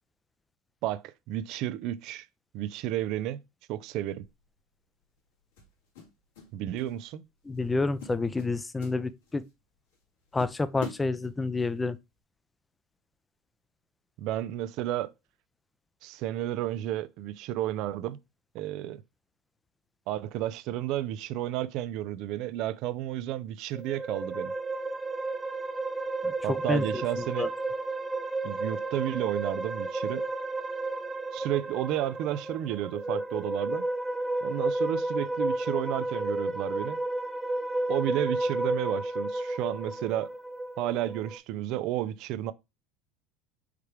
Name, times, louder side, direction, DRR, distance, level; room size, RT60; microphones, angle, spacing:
voice 1, 0.8-2.3 2.5-3.4 3.7-4.2 6.5-7.2 14.2-15.1 16.0-18.2 18.5-19.0 20.1-24.5 26.4-27.5 28.4-30.3 31.3-33.9 34.4-37.0 37.9-40.3 40.8-42.5, right 13 dB, 60° right, 0.4 m, -32 dB
sound 1, 4.2-4.5 5.6-6.5 6.8-7.1 7.5-7.7 8.0-9.5 9.9-10.0 10.4-11.7, left 7 dB, 85° left, 2.2 m, -44 dB
voice 2, 7.5-9.4 10.3-12.0 26.2-27.5, left 3 dB, 15° left, 0.5 m, -29 dB
sound 2, 23.7-41.4, right 2 dB, 10° right, 1.2 m, -32 dB
4.8 x 3.5 x 3.2 m
hypercardioid pair, 90°, 0 cm